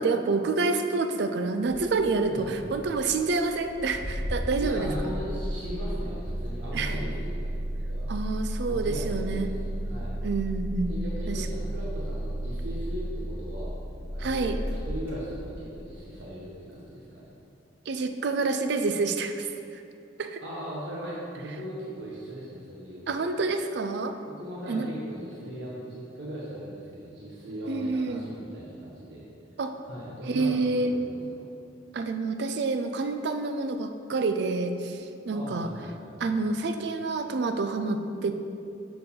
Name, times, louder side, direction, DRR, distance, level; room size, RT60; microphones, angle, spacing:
voice 1, 0.0-4.9 6.7-6.9 8.1-9.5 10.2-10.9 11.3-11.5 14.2-14.6 17.9-19.5 19.7-19.8 20.2-20.4 23.1-24.2 24.7-24.9 27.7-28.2 29.6-29.7 30.3-30.9 31.9-35.7 36.2-38.4, right 3 dB, 65° right, 8 dB, 0.4 m, -28 dB
Engine starting, 1.7-15.8, equal, 10° right, 1.7 m, -33 dB
voice 2, 2.3-2.8 4.6-7.5 7.9-8.1 8.4-9.6 9.8-10.1 10.9-13.8 14.1-17.3 20.4-23.2 24.2-29.2 29.8-31.5 35.3-36.1, equal, 85° right, -7 dB, 1.2 m, -39 dB
6.5 x 4.6 x 5.4 m, 2.5 s
head